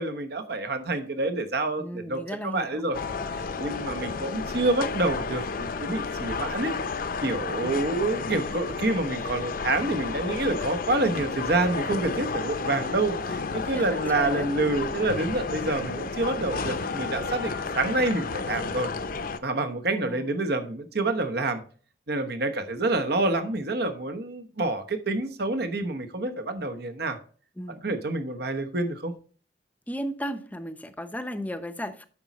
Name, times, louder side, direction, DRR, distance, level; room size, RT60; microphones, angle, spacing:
voice 1, 0.0-3.0 3.6-6.7 7.2-18.9 19.4-21.6 22.1-27.2 27.8-29.1, right 2 dB, 65° right, 1.2 m, -27 dB
voice 2, 1.8-2.9 13.7-14.5 19.9-20.3 27.6-27.8 29.9-32.1, equal, 10° left, 0.7 m, -35 dB
sound 1, 2.9-19.4, left 4 dB, 55° left, 0.7 m, -32 dB
8.5 x 6.1 x 4.1 m
head